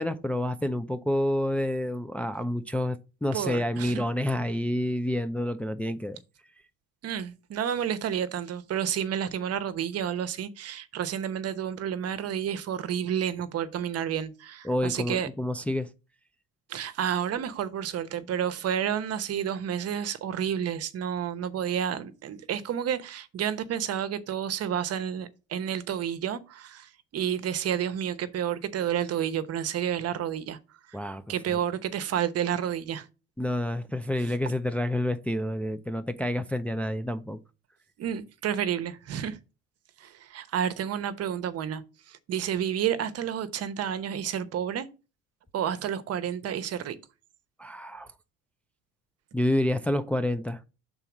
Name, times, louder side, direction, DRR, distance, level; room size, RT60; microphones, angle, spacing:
voice 1, 0.0-6.2 14.6-15.9 30.9-31.2 31.5-31.6 33.4-37.4 47.6-48.1 49.3-50.6, left 1 dB, 5° left, 0.5 m, -28 dB
voice 2, 3.3-4.0 7.0-15.3 16.7-30.6 30.9-31.0 31.3-33.1 38.0-39.4 40.0-41.8 42.1-44.9 45.5-47.0, right 9 dB, 50° right, 0.9 m, -30 dB
5.7 x 3.9 x 6.0 m
supercardioid pair, 90°, 32 cm